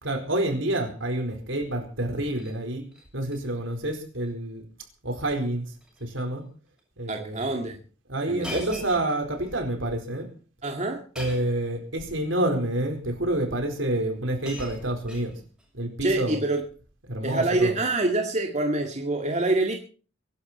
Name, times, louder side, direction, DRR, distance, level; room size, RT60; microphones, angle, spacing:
voice 1, 0.0-2.8 3.1-4.6 5.0-5.7 6.0-6.4 7.0-7.4 8.1-10.3 11.2-15.3 15.7-16.4 17.1-17.8, right 1 dB, 70° right, 4.5 m, -28 dB
Shatter, 2.1-2.6 2.9-3.4 3.7-4.0 4.2-4.3 5.2-5.4 5.8-6.0 6.8-6.9 8.4-9.5 11.1-11.6 12.6-12.7 13.8-13.9 14.1-15.7 16.6-16.9, left 1 dB, 5° right, 7.0 m, -42 dB
voice 2, 7.1-7.8 8.3-8.8 10.6-11.0 16.0-16.6 17.2-19.7, right 2 dB, 35° right, 2.1 m, -26 dB
23.5 x 11.5 x 4.4 m
head